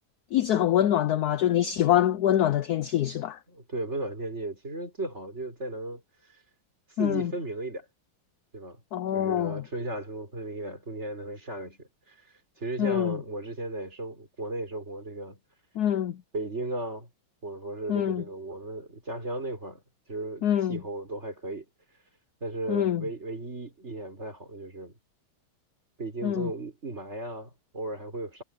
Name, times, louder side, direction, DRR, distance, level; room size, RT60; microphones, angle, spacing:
voice 1, 0.3-3.4 7.0-7.3 8.9-9.6 12.8-13.2 15.8-16.2 17.9-18.2 20.4-20.8 22.7-23.0 26.2-26.5, left 11 dB, 75° left, 0.9 m, -25 dB
voice 2, 3.5-6.0 6.3-6.4 7.0-7.9 8.5-8.8 9.1-15.4 16.3-17.1 17.4-19.8 20.1-21.7 22.4-24.9 26.0-28.4, right 2 dB, 30° right, 5.4 m, -36 dB
omnidirectional pair, 2.3 m